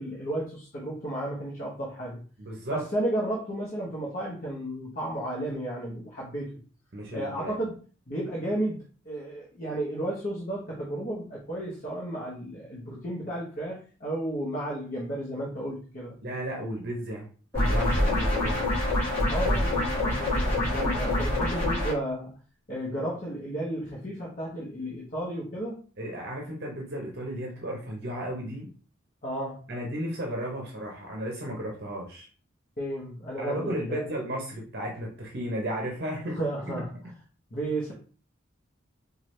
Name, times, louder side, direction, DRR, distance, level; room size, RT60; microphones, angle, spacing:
voice 1, 0.0-2.2 2.7-6.6 7.1-7.7 8.1-8.8 9.0-16.2 19.3-22.3 22.7-25.8 29.2-29.6 32.8-34.1 36.3-36.9 37.5-37.9, right 1 dB, 40° left, -6 dB, 0.9 m, -33 dB
voice 2, 2.4-2.8 6.9-7.6 16.2-17.3 17.5-18.6 26.0-28.7 29.7-32.3 33.4-36.4, right 1 dB, 50° right, 0 dB, 0.7 m, -34 dB
sound 1, 17.5-21.9, left 1 dB, 10° left, 2.0 m, -25 dB
4.6 x 2.4 x 3.1 m, 0.39 s
head